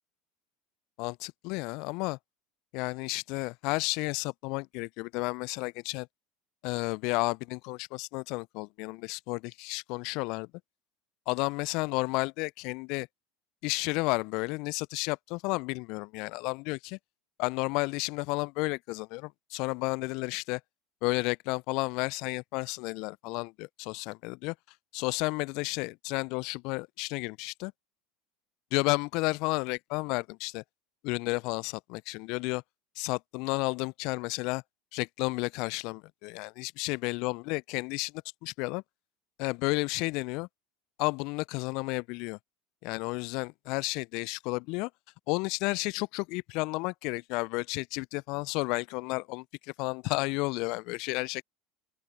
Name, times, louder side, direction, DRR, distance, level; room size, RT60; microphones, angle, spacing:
voice 1, 1.0-2.2 2.7-6.1 6.6-10.5 11.3-13.1 13.6-17.0 17.4-20.6 21.0-24.5 24.9-27.7 28.7-30.6 31.0-32.6 33.0-34.6 34.9-38.1 38.4-38.8 39.4-40.5 41.0-42.4 42.8-44.9 45.3-49.4 49.8-51.4, left 26 dB, 60° left, 0.3 m, -32 dB
open air
hypercardioid pair, 75°, 0 cm